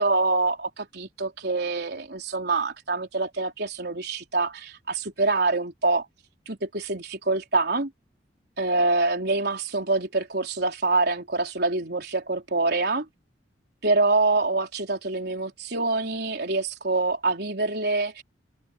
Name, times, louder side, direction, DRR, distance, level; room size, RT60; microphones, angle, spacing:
voice 1, 0.0-6.1 6.5-7.9 8.6-13.1 13.8-18.2, right 3 dB, 65° right, 4.1 m, -25 dB
head